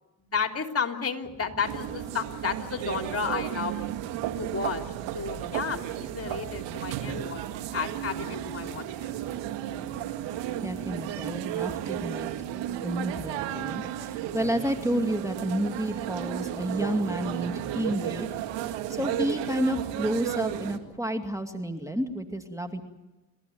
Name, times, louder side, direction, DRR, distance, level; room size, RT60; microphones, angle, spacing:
voice 1, 0.2-3.7 4.4-4.8 5.1-7.4 7.7-9.1, left 5 dB, 35° left, 5 dB, 3.4 m, -32 dB
sound 1, 1.6-20.8, right 11 dB, 80° right, 2.1 m, -33 dB
voice 2, 6.2-6.6 10.6-12.3 12.8-18.3 18.9-22.8, right 1 dB, 5° right, 6 dB, 2.4 m, -30 dB
30.0 x 14.0 x 9.4 m, 1.1 s
supercardioid pair, 65°, 43 cm